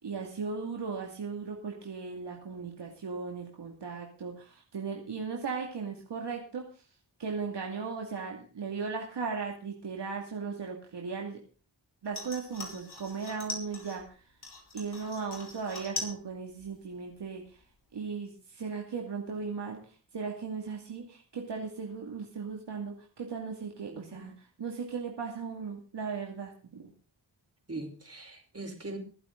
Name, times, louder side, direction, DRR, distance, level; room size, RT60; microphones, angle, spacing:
voice 1, 0.0-6.6 7.2-11.4 12.0-14.2 14.7-17.6 17.9-26.9, right 5 dB, 70° right, 0 dB, 2.6 m, -37 dB
sound 1, 12.1-14.0 14.4-16.2 16.5-17.1 17.4-17.5, left 3 dB, 60° left, 5.5 m, -41 dB
voice 2, 23.9-24.3 27.7-29.0, right 2 dB, 35° right, 3 dB, 4.9 m, -41 dB
24.0 x 8.5 x 3.9 m, 0.38 s
cardioid pair, 50°, 44 cm